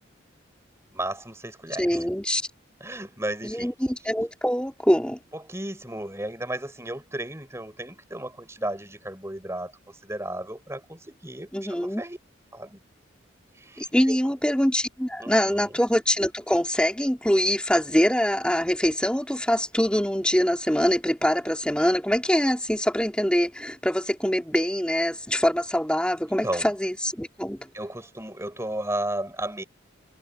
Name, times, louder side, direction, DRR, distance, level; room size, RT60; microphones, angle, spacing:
voice 1, 0.9-2.1 2.8-3.7 5.3-12.2 12.5-12.8 13.5-14.2 15.2-15.7 26.3-26.7 27.7-29.6, right 1 dB, 15° right, 5.9 m, -34 dB
voice 2, 1.8-2.4 3.4-5.2 11.5-12.0 13.8-27.7, equal, 5° left, 3.3 m, -24 dB
head